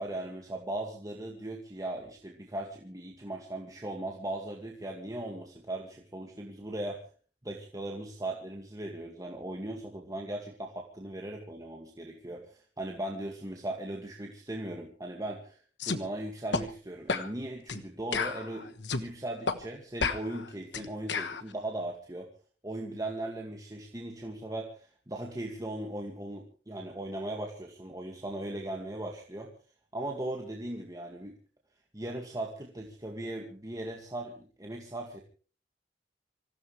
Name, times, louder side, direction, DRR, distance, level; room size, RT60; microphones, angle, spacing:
voice 1, 0.0-7.0 7.4-22.3 22.6-29.5 29.9-31.4 31.9-35.2, right 1 dB, 20° right, 1 dB, 2.2 m, -38 dB
sound 1, 15.8-16.0 16.5-16.7 17.1-17.3 17.7-17.8 18.1-19.1 19.5-19.6 20.0-21.4, left 4 dB, 85° left, 1.4 m, -31 dB
26.0 x 16.0 x 3.3 m, 0.39 s
head